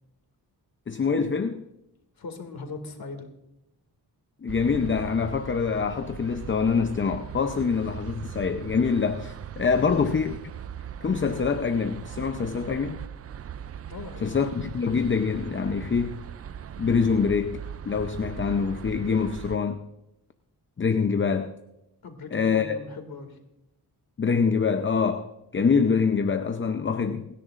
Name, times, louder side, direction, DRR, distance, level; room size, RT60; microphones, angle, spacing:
voice 1, 0.9-1.7 4.4-10.4 11.0-13.0 14.2-16.2 16.8-17.6 17.9-19.8 20.8-21.6 22.3-22.8 24.2-27.3, left 5 dB, 30° left, 0.6 m, -25 dB
voice 2, 2.2-3.3 9.8-10.0 13.9-14.4 22.0-23.4, left 3 dB, 65° left, 2.3 m, -39 dB
sound 1, 4.5-19.6, right 9 dB, 40° right, 0.4 m, -39 dB
29.0 x 10.0 x 2.5 m
wide cardioid pair, 105°, 39 cm